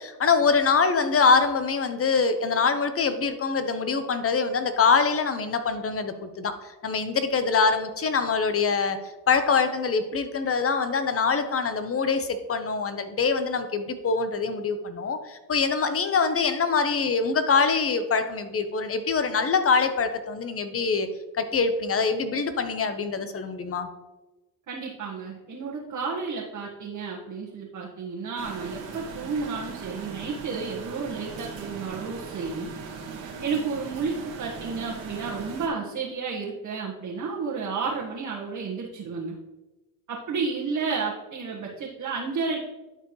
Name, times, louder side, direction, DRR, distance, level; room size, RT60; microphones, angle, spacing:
voice 1, 0.0-6.5 6.8-9.0 9.3-21.1 21.3-23.9, left 5 dB, 30° left, 9 dB, 0.9 m, -24 dB
voice 2, 24.7-32.7 33.4-39.4 40.1-42.6, right 4 dB, 40° right, -4 dB, 1.5 m, -31 dB
sound 1, 28.4-35.7, right 5 dB, 75° right, 2.0 m, -39 dB
11.5 x 4.4 x 3.1 m, 1.1 s
supercardioid pair, 85°, 45 cm